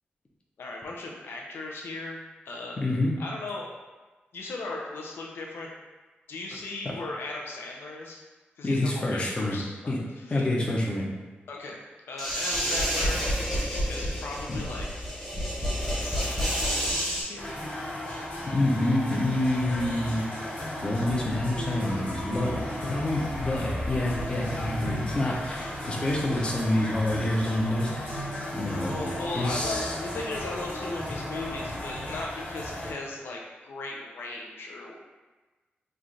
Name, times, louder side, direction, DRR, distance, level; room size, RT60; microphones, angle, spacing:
voice 1, 0.6-2.8 3.2-3.7 4.3-5.7 6.3-8.2 8.6-10.5 11.5-11.8 12.1-13.3 13.9-14.9 16.0-17.5 21.9-22.0 24.5-24.7 25.3-25.4 28.8-34.9, left 2 dB, 85° left, -1 dB, 0.5 m, -37 dB
voice 2, 2.8-3.1 8.6-9.6 9.9-10.0 10.3-11.0 14.5-14.6 18.5-20.3 20.8-27.9 28.5-29.1 29.4-30.0, left 1 dB, 25° left, -2 dB, 0.5 m, -27 dB
sound 1, 12.2-17.2, equal, 5° left, 0.8 m, -29 dB
sound 2, 17.4-32.9, left 1 dB, 45° left, 1.2 m, -34 dB
3.2 x 2.3 x 3.8 m, 1.2 s
wide cardioid pair, 170°, 4 cm